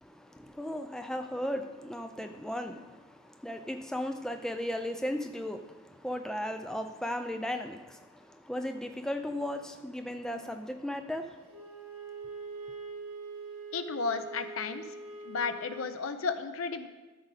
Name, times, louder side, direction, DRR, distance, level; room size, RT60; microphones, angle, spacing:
voice 1, 0.0-11.7, left 1 dB, 5° left, 6 dB, 0.3 m, -36 dB
Wind instrument woodwind instrument, 11.5-16.0, right 4 dB, 80° right, 1.8 m, -43 dB
voice 2, 13.7-14.8 15.2-16.9, left 4 dB, 70° left, 10 dB, 0.6 m, -33 dB
13.0 x 5.0 x 4.0 m, 1.2 s
head